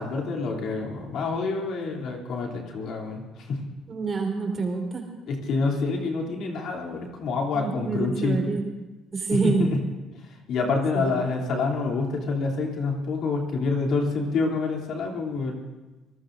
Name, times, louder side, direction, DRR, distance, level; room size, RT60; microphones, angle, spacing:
voice 1, 0.0-3.6 5.3-8.4 9.3-9.8 10.2-15.6, left 3 dB, 70° left, 0 dB, 3.0 m, -27 dB
voice 2, 3.9-5.0 7.5-8.7 9.1-9.7 10.9-11.1, right 4 dB, 40° right, 1 dB, 3.8 m, -27 dB
25.5 x 19.0 x 2.6 m, 1.2 s
supercardioid pair, 75°, 0 cm